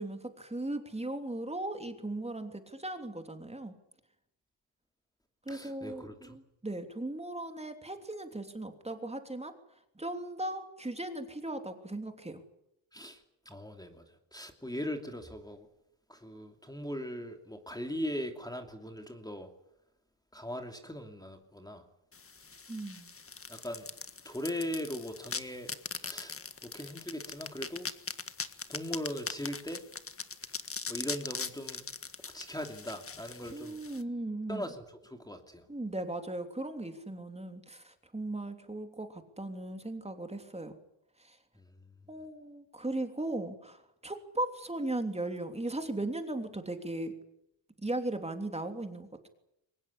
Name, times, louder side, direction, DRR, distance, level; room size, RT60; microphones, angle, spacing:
voice 1, 0.0-3.7 5.4-9.5 9.9-12.4 22.7-23.1 33.5-34.6 35.7-40.8 41.2-41.4 42.1-47.1 47.8-49.3, right 2 dB, 15° right, 6 dB, 3.1 m, -37 dB
voice 2, 5.5-6.4 12.9-15.7 16.1-19.5 20.3-21.9 23.5-23.9 24.2-27.9 28.7-29.8 30.9-31.8 32.3-33.8 34.5-35.7 41.5-41.9, equal, 10° left, 5 dB, 2.9 m, -40 dB
sound 1, 22.1-34.0, left 5 dB, 30° left, 1.7 m, -41 dB
23.5 x 19.5 x 9.9 m, 0.81 s
cardioid pair, 95°, 47 cm